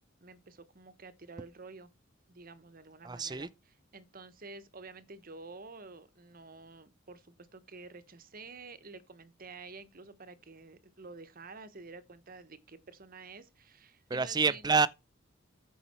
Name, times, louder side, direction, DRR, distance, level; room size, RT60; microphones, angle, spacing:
voice 1, 0.2-1.9 2.3-3.5 3.9-14.8, right 3 dB, 45° right, 1.1 m, -50 dB
voice 2, 3.0-3.5 14.1-14.9, right 4 dB, 20° right, 0.6 m, -27 dB
14.0 x 5.6 x 4.4 m
head